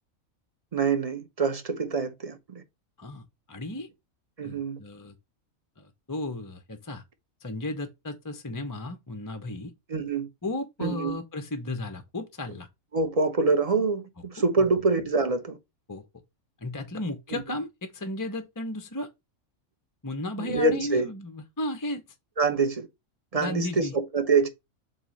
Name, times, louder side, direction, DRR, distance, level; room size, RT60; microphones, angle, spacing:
voice 1, 0.7-2.6 4.4-4.8 9.9-10.3 10.8-11.2 12.9-15.6 17.3-17.4 20.4-21.1 22.4-22.9 23.3-24.5, right 4 dB, 30° right, 0.8 m, -25 dB
voice 2, 3.5-3.9 4.4-5.1 5.8-7.0 7.4-9.7 10.4-12.7 15.9-16.0 16.6-19.1 20.0-22.0 23.3-23.9, left 2 dB, 20° left, 0.5 m, -34 dB
7.5 x 2.8 x 5.3 m
omnidirectional pair, 1.5 m